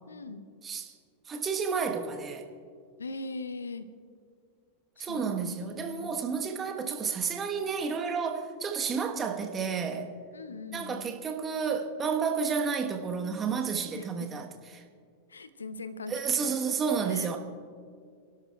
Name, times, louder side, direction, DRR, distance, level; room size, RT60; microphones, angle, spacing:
voice 1, 0.1-0.5 3.0-3.9 5.0-6.2 6.5-7.0 9.0-9.3 10.3-11.3 13.9-14.3 15.3-16.5 17.0-17.4, left 3 dB, 75° left, 13 dB, 0.7 m, -41 dB
voice 2, 1.3-2.5 5.0-10.1 10.7-14.5 14.8-14.9 16.1-17.4, right 6 dB, 20° right, 4 dB, 1.2 m, -31 dB
28.5 x 12.0 x 2.4 m, 2.1 s
figure-of-eight pair, 90°, 0 cm